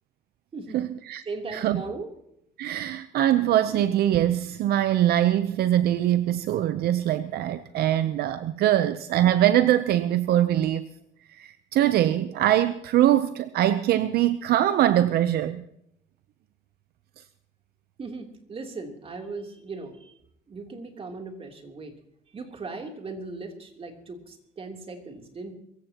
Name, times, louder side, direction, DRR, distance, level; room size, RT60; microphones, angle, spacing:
voice 1, 0.7-1.2 1.5-1.8 2.6-10.9 11.3-15.6, right 12 dB, 70° right, 0.7 m, -23 dB
voice 2, 1.2-2.1 18.0-20.1 20.5-21.9 22.3-25.5, right 3 dB, 35° right, 3.3 m, -38 dB
23.5 x 15.5 x 3.0 m
cardioid pair, 110°, 17 cm